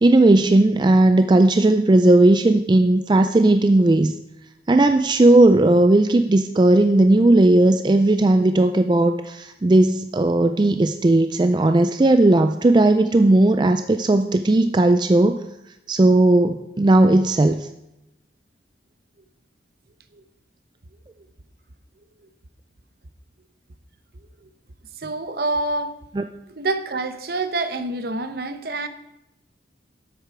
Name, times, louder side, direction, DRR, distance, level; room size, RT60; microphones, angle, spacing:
voice 1, 0.0-4.1 4.7-15.4 15.9-17.7 26.2-26.3, right 2 dB, 25° right, 0.3 m, -16 dB
voice 2, 25.0-26.0 26.5-28.9, right 2 dB, 55° right, 0.8 m, -27 dB
12.5 x 8.1 x 4.8 m
head